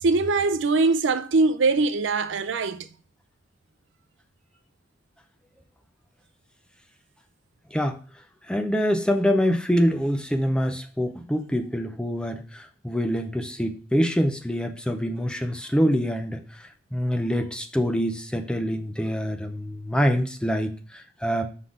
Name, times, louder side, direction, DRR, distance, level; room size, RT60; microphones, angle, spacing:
voice 1, 0.0-2.9, right 3 dB, 70° right, 0.5 m, -22 dB
voice 2, 8.5-21.4, equal, 5° left, 0.6 m, -25 dB
5.6 x 4.0 x 4.8 m
head